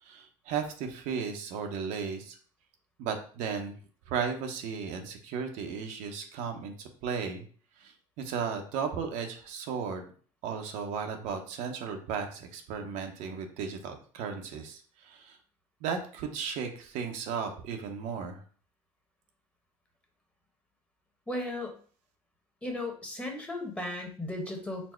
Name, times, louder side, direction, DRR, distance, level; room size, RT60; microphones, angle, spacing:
voice 1, 0.0-2.4 3.0-3.8 4.1-7.4 7.8-10.0 10.4-15.4 15.8-18.4, right 6 dB, 70° right, 4 dB, 0.7 m, -35 dB
voice 2, 21.3-21.7 22.6-24.9, left 1 dB, 10° left, 2 dB, 1.0 m, -36 dB
4.2 x 2.1 x 4.3 m, 0.44 s
supercardioid pair, 105°, 13 cm